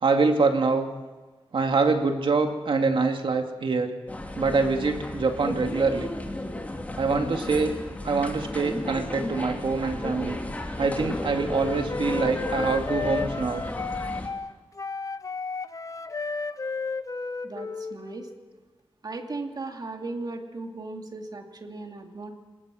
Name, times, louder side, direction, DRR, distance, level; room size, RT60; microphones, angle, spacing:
voice 1, 0.0-0.9 1.5-3.9 4.4-6.1 7.0-7.7 8.0-10.4 10.8-13.6, right 4 dB, 65° right, 4 dB, 2.3 m, -24 dB
sound 1, 4.1-14.3, left 1 dB, 15° left, 2.8 m, -34 dB
Wind instrument woodwind instrument, 10.9-18.4, left 4 dB, 35° left, 0.8 m, -33 dB
voice 2, 17.4-18.3 19.0-22.3, right 3 dB, 45° right, 3 dB, 2.7 m, -37 dB
27.0 x 20.0 x 6.3 m, 1.3 s
wide cardioid pair, 135°, 9 cm